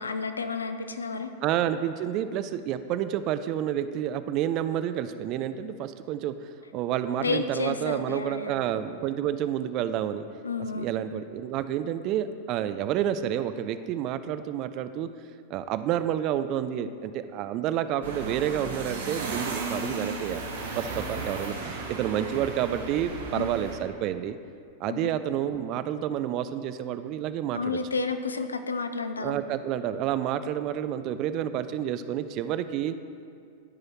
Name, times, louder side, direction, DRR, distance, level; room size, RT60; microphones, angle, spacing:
voice 1, 0.0-1.3 7.2-8.5 10.4-11.0 23.3-23.5 24.8-25.1 27.5-29.4, left 4 dB, 75° left, 9 dB, 0.5 m, -31 dB
voice 2, 1.4-10.2 10.7-15.1 15.5-20.4 20.7-24.4 24.8-27.8 29.2-33.0, right 10 dB, 40° right, 11 dB, 0.3 m, -29 dB
sound 1, 18.0-23.8, right 3 dB, 65° right, 1.2 m, -35 dB
13.5 x 4.8 x 3.0 m, 2.3 s
figure-of-eight pair, 90°, 0 cm